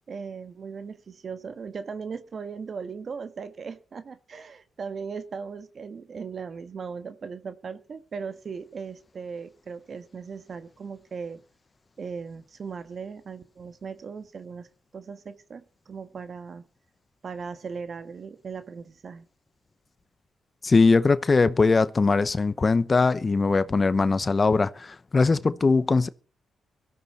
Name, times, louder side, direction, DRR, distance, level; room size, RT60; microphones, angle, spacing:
voice 1, 0.1-11.4 12.0-14.7 14.9-16.6 17.2-19.3, right 5 dB, 50° right, 1.4 m, -38 dB
voice 2, 20.6-26.1, left 4 dB, 35° left, 0.8 m, -21 dB
17.5 x 13.5 x 4.2 m
cardioid pair, 75°, 0 cm